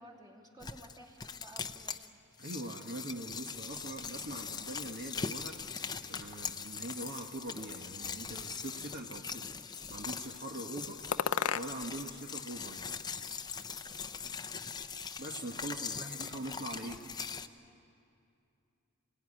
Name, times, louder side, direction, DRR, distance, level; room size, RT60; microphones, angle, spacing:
voice 1, 0.0-2.0 15.8-17.1 17.6-17.8, right 1 dB, 20° right, -2 dB, 2.7 m, -55 dB
sound 1, 0.6-2.1 2.4-17.5, left 6 dB, 20° left, 0.6 m, -41 dB
voice 2, 2.4-5.6 6.1-9.5 9.9-11.0 11.5-12.9 15.2-17.0, right 1 dB, 50° right, 1 dB, 1.3 m, -42 dB
sound 2, 7.9-8.9 9.6-10.2 11.1-12.0 12.3-13.4, left 8 dB, 80° left, 0.5 m, -37 dB
27.0 x 18.0 x 10.0 m, 2.6 s
head